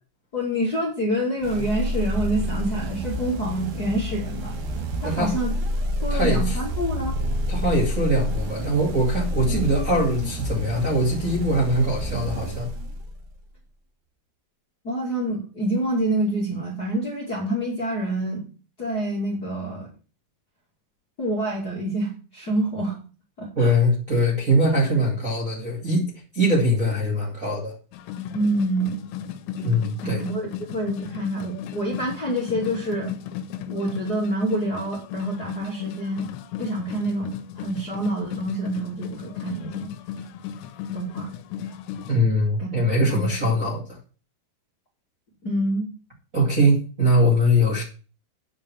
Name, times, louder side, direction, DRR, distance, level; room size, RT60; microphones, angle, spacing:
voice 1, 0.3-4.6 5.0-5.5 6.0-7.2 9.5-9.6 14.8-18.4 18.8-19.9 21.2-23.0 23.4-23.8 28.3-29.0 30.0-33.1 33.7-36.3 36.6-39.9 40.9-41.3 42.6-42.7 43.1-43.5 45.4-45.9, right 1 dB, 30° left, -3 dB, 2.3 m, -27 dB
sound 1, 1.4-13.3, equal, 65° right, 3.4 m, -28 dB
voice 2, 5.0-5.3 6.1-6.6 7.5-12.7 23.6-26.0 26.3-27.7 29.6-30.2 42.1-43.8 46.3-47.8, equal, 25° right, -3 dB, 2.2 m, -22 dB
sound 2, 27.9-42.2, left 9 dB, 85° left, 3.1 m, -35 dB
9.5 x 5.1 x 7.2 m, 0.35 s
omnidirectional pair, 5.1 m